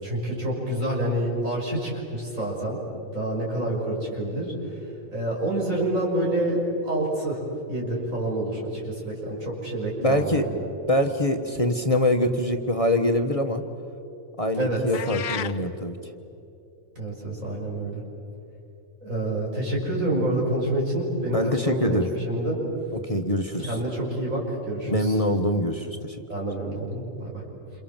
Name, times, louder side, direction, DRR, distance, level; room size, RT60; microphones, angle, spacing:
voice 1, 0.0-2.8 3.1-4.5 5.1-7.4 7.7-10.4 14.6-14.8 17.0-18.0 19.0-22.6 23.6-25.2 26.3-27.4, right 1 dB, 75° right, -3 dB, 6.9 m, -27 dB
voice 2, 10.0-10.4 10.9-13.6 14.4-16.0 21.3-22.1 23.0-23.8 24.9-26.2, left 1 dB, 25° left, 5 dB, 1.2 m, -24 dB
sound 1, 14.9-15.6, left 8 dB, 65° left, 1.2 m, -32 dB
28.5 x 28.0 x 7.4 m, 2.8 s
omnidirectional pair, 1.4 m